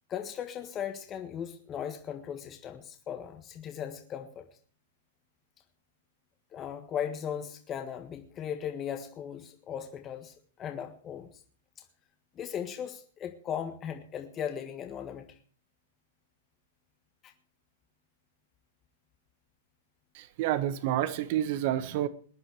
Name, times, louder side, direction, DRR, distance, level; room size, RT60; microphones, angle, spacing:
voice 1, 0.1-4.4 6.5-11.3 12.3-15.4 17.2-17.3, left 8 dB, 30° left, 6 dB, 1.6 m, -37 dB
voice 2, 20.1-22.1, right 12 dB, 50° right, 15 dB, 1.4 m, -29 dB
20.0 x 10.5 x 4.8 m, 0.43 s
hypercardioid pair, 110°, 0 cm